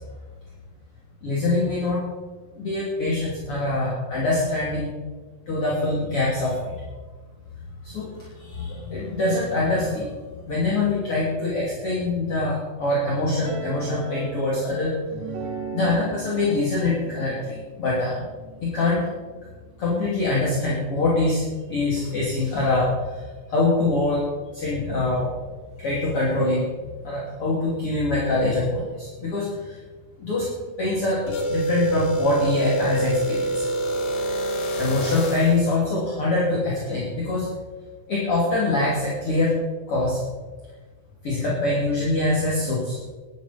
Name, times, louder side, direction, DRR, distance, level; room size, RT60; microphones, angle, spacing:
voice 1, 1.2-2.0 2.6-4.9 5.5-6.6 7.8-10.1 10.5-14.9 15.7-18.2 18.6-19.1 19.8-22.9 23.5-24.3 24.5-25.3 25.8-26.7 27.0-29.8 30.2-30.5 30.8-33.7 34.2-34.3 34.8-37.5 38.1-40.2 41.2-43.0, left 2 dB, 40° left, -6 dB, 3.7 m, -24 dB
sound 1, 13.4-19.5, right 4 dB, 75° right, 3.3 m, -37 dB
sound 2, 31.3-35.7, right 1 dB, 90° left, 4.1 m, -26 dB
17.5 x 13.0 x 4.4 m, 1.4 s
omnidirectional pair, 3.9 m